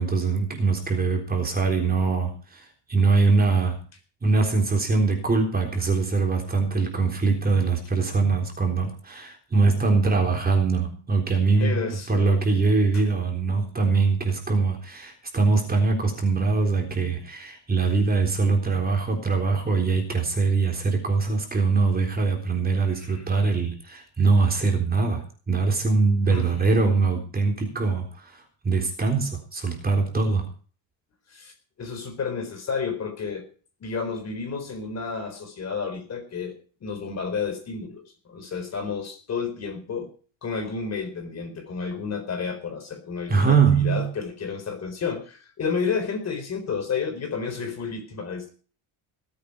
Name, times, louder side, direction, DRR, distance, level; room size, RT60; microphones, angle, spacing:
voice 1, 0.0-3.8 4.2-30.5 43.3-44.1, right 4 dB, 20° right, 2 dB, 3.7 m, -23 dB
voice 2, 11.6-12.4 22.9-23.2 26.3-26.7 31.3-33.4 33.8-40.1 40.4-48.5, left 5 dB, 30° left, 7 dB, 4.2 m, -31 dB
19.0 x 8.8 x 5.5 m, 0.40 s
cardioid pair, 145°, 50 cm